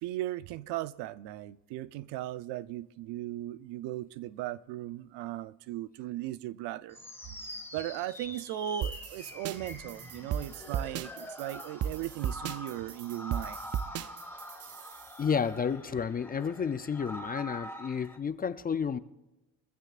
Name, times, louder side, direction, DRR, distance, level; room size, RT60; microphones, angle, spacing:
voice 1, 0.0-7.0 7.7-13.6, right 14 dB, 80° right, 0.7 m, -37 dB
sound 1, 6.9-18.2, left 1 dB, 5° left, 1.6 m, -45 dB
sound 2, 8.8-15.2, right 9 dB, 40° right, 0.5 m, -36 dB
voice 2, 15.2-19.0, left 6 dB, 25° left, 0.4 m, -31 dB
24.0 x 15.0 x 2.5 m
cardioid pair, 120°, 41 cm